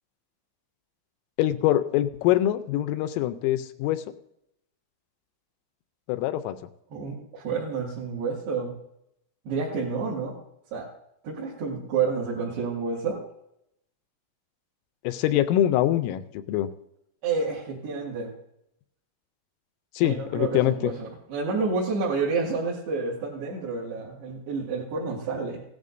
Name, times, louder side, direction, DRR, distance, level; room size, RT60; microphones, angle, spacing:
voice 1, 1.4-4.0 6.1-6.6 15.0-16.7 20.0-20.9, left 13 dB, 85° left, 11 dB, 3.2 m, -24 dB
voice 2, 6.9-8.7 9.5-10.4 10.7-10.9 11.2-13.2 17.2-18.3 20.0-25.6, right 4 dB, 60° right, -8 dB, 3.6 m, -29 dB
17.5 x 12.0 x 2.6 m, 0.78 s
omnidirectional pair, 6.0 m